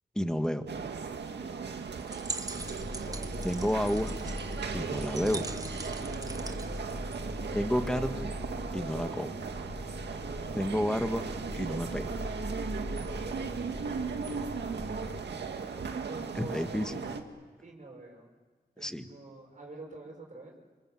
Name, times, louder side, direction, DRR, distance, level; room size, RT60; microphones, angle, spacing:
voice 1, 0.1-0.6 3.4-4.1 4.7-5.5 7.5-8.3 8.7-9.3 10.5-11.2 11.6-12.1 16.3-16.9 18.8-19.0, equal, 5° left, 7 dB, 1.7 m, -30 dB
sound 1, 0.7-17.2, right 5 dB, 90° right, 2.0 m, -37 dB
sound 2, 2.0-7.6, right 2 dB, 20° right, 1.3 m, -42 dB
sound 3, 2.5-15.2, left 2 dB, 25° left, 3.7 m, -41 dB
voice 2, 3.1-3.6 16.1-17.0 17.6-18.4 18.8-20.5, right 2 dB, 50° right, 0 dB, 5.7 m, -47 dB
28.5 x 26.5 x 7.7 m, 1.4 s
wide cardioid pair, 105°, 17 cm